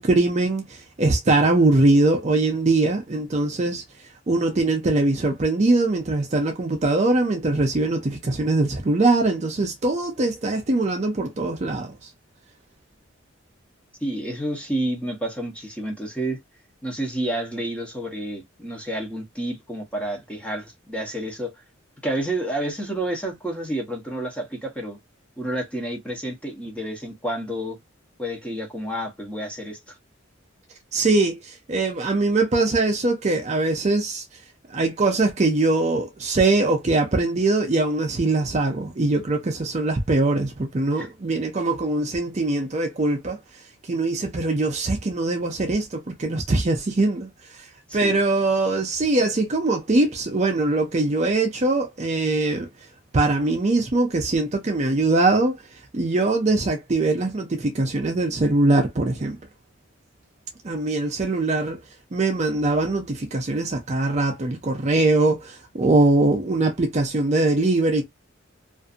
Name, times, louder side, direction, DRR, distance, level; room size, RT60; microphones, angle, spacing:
voice 1, 0.0-3.8 4.3-11.9 30.9-34.2 34.7-43.4 43.9-47.3 47.9-52.7 53.1-55.6 55.9-59.4 60.6-61.8 62.1-68.0, right 2 dB, 35° right, 0.5 m, -22 dB
voice 2, 14.0-16.4 16.8-21.5 22.0-25.0 25.4-27.8 28.2-29.9 40.9-41.1 47.9-48.2, right 1 dB, 5° left, 0.8 m, -30 dB
2.5 x 2.5 x 2.5 m
head